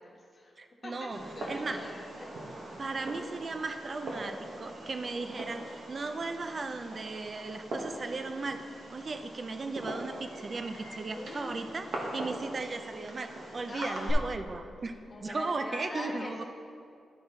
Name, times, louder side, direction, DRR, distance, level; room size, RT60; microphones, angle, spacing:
voice 1, 0.0-1.1 1.3-2.3 11.1-11.6 13.5-14.2 15.1-16.4, left 2 dB, 25° left, -3 dB, 1.2 m, -43 dB
voice 2, 0.6-1.2 1.5-1.8 2.8-8.6 8.9-16.4, right 3 dB, 30° right, 8 dB, 0.4 m, -36 dB
Fireworks, 1.1-14.1, right 1 dB, 55° right, 1.1 m, -42 dB
12.0 x 4.3 x 3.9 m, 2.4 s
wide cardioid pair, 170°, 0 cm